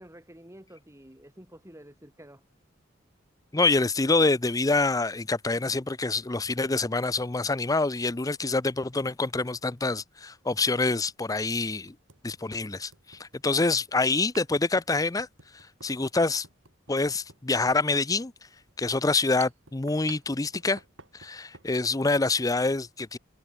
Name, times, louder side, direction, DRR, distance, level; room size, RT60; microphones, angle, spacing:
voice 1, 0.0-2.4, right 1 dB, 15° right, 5.6 m, -49 dB
voice 2, 3.5-11.9 12.2-15.3 15.5-16.5 16.9-18.3 18.8-20.8 21.1-23.2, left 3 dB, 20° left, 0.6 m, -26 dB
sound 1, 9.0-9.1 10.6-10.7 11.2-11.3 11.9-21.7, right 6 dB, 85° right, 4.2 m, -52 dB
head